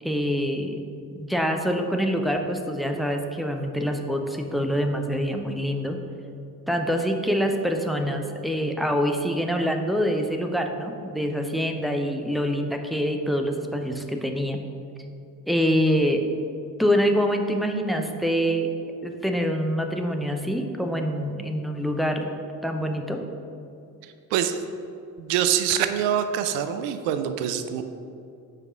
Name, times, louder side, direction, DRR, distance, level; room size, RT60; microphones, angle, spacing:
voice 1, 0.0-0.8 1.1-6.0 6.7-14.6 15.5-16.2 16.8-18.7 19.0-22.3 22.6-23.2, equal, ahead, 3 dB, 0.4 m, -25 dB
voice 2, 24.3-24.6 25.2-27.8, right 9 dB, 60° right, 9 dB, 0.6 m, -25 dB
4.8 x 4.7 x 4.9 m, 2.5 s
figure-of-eight pair, 45°, 48 cm